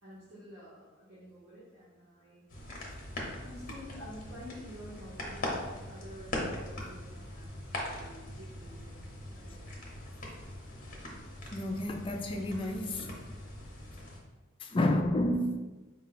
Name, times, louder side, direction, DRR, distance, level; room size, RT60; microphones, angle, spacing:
voice 1, 0.0-2.5 3.4-9.7, equal, 75° right, -10 dB, 1.2 m, -50 dB
sound 1, 2.5-14.2, left 1 dB, 45° left, 0.8 m, -41 dB
voice 2, 11.5-13.1 14.6-15.6, left 1 dB, 25° left, 4 dB, 0.3 m, -30 dB
4.4 x 2.2 x 3.9 m, 1.2 s
head